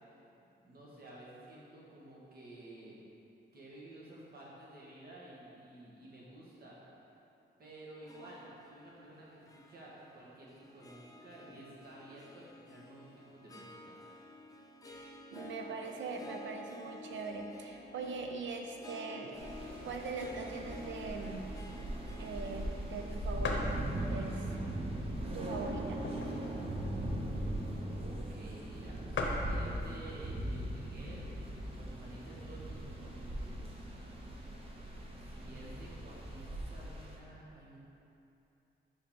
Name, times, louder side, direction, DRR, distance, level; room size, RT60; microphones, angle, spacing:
voice 1, 0.6-3.0 3.5-6.8 7.6-14.0 28.0-31.3 31.7-33.6 35.2-37.8, right 1 dB, 55° right, -6 dB, 1.5 m, -52 dB
Harp, 8.0-26.5, left 1 dB, 20° left, 0.4 m, -52 dB
voice 2, 14.8-19.6 19.8-21.4 22.2-24.6 25.3-26.0, right 4 dB, 80° right, 3 dB, 0.6 m, -42 dB
sound 1, 19.4-37.2, right 1 dB, 30° right, 0.7 m, -40 dB
sound 2, 22.4-22.5 22.9-23.0 23.4-23.8 24.4-24.5 25.3-26.5 26.9-27.0 27.1-27.4 28.2-28.3 28.5-28.6 28.8-28.9 29.1-29.5 30.4-30.8 31.3-31.4 31.6-32.4, left 3 dB, 75° left, 0.7 m, -38 dB
5.3 x 5.0 x 4.4 m, 2.8 s
wide cardioid pair, 150°, 19 cm